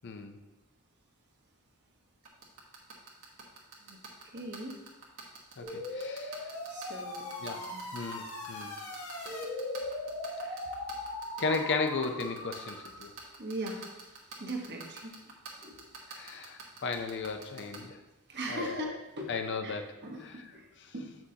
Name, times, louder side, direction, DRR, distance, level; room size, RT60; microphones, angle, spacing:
voice 1, 0.0-0.4 5.6-6.5 7.4-7.6 7.9-8.7 11.4-13.1 16.1-18.0 18.5-18.9 19.3-19.9 20.2-20.4 20.9-21.0, left 4 dB, 55° left, 6 dB, 0.6 m, -35 dB
sound 1, 2.3-17.8, right 5 dB, 65° right, 1.4 m, -45 dB
voice 2, 4.2-4.8 6.7-7.8 10.3-10.7 13.4-15.9 18.3-19.7 20.0-21.2, right 1 dB, 50° right, 1 dB, 1.1 m, -41 dB
sound 2, 5.6-13.1, left 2 dB, 75° left, 1.1 m, -39 dB
7.7 x 6.0 x 2.8 m, 1.0 s
head